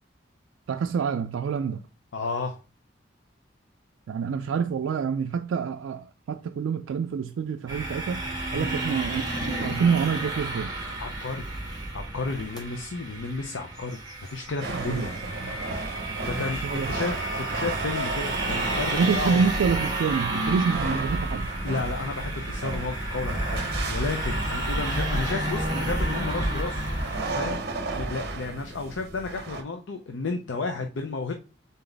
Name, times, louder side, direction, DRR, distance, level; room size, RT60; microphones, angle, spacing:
voice 1, 0.7-1.8 4.1-8.2 8.5-10.7 14.8-15.1 16.6-16.9 19.0-21.5, right 6 dB, 85° right, 0.3 m, -27 dB
voice 2, 2.1-2.6 8.5-8.8 11.0-11.4 11.9-14.0 14.3-15.2 16.3-19.4 21.6-23.6 23.9-26.9 27.4-27.6 27.9-31.3, left 3 dB, 80° left, 0.6 m, -32 dB
sound 1, 7.7-27.3, right 2 dB, 20° right, 1.4 m, -32 dB
sound 2, 12.5-12.6 13.2-13.4 13.7-15.2 15.8-15.9 17.7-27.0, equal, 20° left, 1.4 m, -34 dB
sound 3, 14.6-29.6, right 2 dB, 55° right, 0.7 m, -34 dB
4.0 x 3.9 x 3.3 m
head